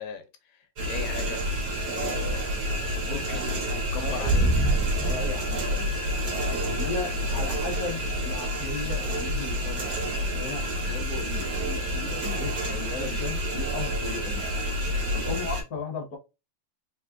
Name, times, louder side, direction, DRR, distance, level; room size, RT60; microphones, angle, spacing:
voice 1, 0.0-1.4 1.9-4.7 7.0-7.2 15.3-15.4, left 8 dB, 85° left, 2.0 m, -39 dB
sound 1, 0.8-15.6, equal, 55° right, 1.2 m, -28 dB
voice 2, 3.9-4.4 4.7-6.0 6.7-14.4 15.1-16.2, left 4 dB, 55° left, 1.0 m, -36 dB
4.2 x 3.6 x 2.4 m
omnidirectional pair, 3.3 m